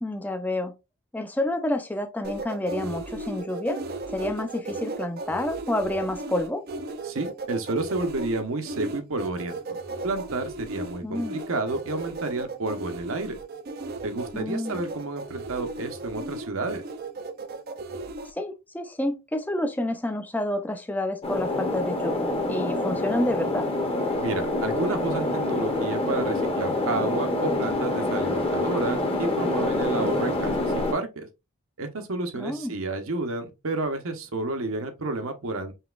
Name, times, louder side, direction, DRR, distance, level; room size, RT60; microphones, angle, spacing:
voice 1, 0.0-0.7 1.1-6.6 11.0-11.4 14.3-14.8 18.3-23.7 32.3-32.7, left 1 dB, 10° left, 0.4 m, -29 dB
sound 1, 2.2-18.3, right 2 dB, 45° right, 0.5 m, -36 dB
voice 2, 7.0-9.6 10.0-13.4 14.0-16.8 24.2-31.3 31.8-35.7, right 2 dB, 70° right, 0.8 m, -30 dB
sound 2, 21.2-30.9, left 2 dB, 25° left, 0.8 m, -26 dB
5.5 x 2.9 x 2.4 m
head